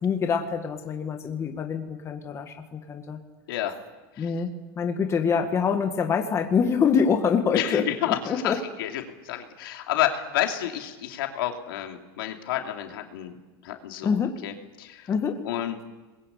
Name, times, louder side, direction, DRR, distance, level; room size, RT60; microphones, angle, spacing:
voice 1, 0.0-3.2 4.2-4.5 4.8-8.6 14.0-14.4 15.1-15.4, left 6 dB, 25° left, 5 dB, 2.0 m, -25 dB
voice 2, 7.5-13.4 13.6-15.1 15.4-15.8, left 12 dB, 80° left, 3 dB, 3.0 m, -30 dB
26.5 x 22.0 x 8.4 m, 1.2 s
supercardioid pair, 140°, 12 cm